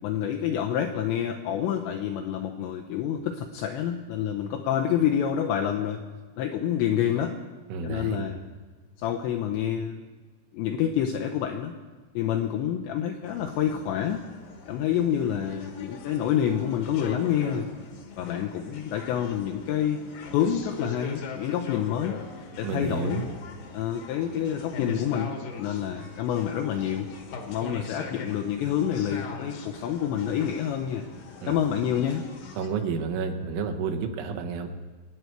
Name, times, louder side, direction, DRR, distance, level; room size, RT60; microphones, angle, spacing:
voice 1, 0.0-6.0 6.4-7.4 7.8-8.4 9.0-10.1 10.5-11.7 12.1-14.2 14.7-17.7 18.2-20.0 20.3-22.2 22.6-23.3 23.7-27.1 27.4-31.0 31.5-32.3, left 9 dB, 85° left, 3 dB, 2.5 m, -28 dB
voice 2, 7.7-8.2 22.6-23.3 31.4-31.5 32.6-34.7, right 5 dB, 75° right, 3 dB, 3.2 m, -30 dB
sound 1, 13.2-32.7, left 4 dB, 65° left, 2.3 m, -41 dB
25.0 x 9.2 x 4.5 m, 1.3 s
omnidirectional pair, 5.8 m